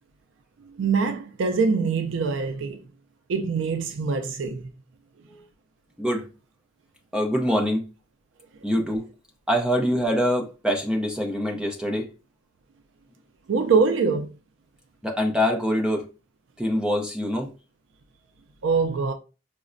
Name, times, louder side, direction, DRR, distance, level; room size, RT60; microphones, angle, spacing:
voice 1, 0.8-2.8 3.3-4.7 13.5-14.3 18.6-19.1, right 4 dB, 75° right, 0.4 m, -23 dB
voice 2, 7.1-7.9 8.6-9.1 9.5-12.1 15.0-16.1 16.6-17.5, equal, 5° right, 0.5 m, -24 dB
4.7 x 2.1 x 2.5 m
head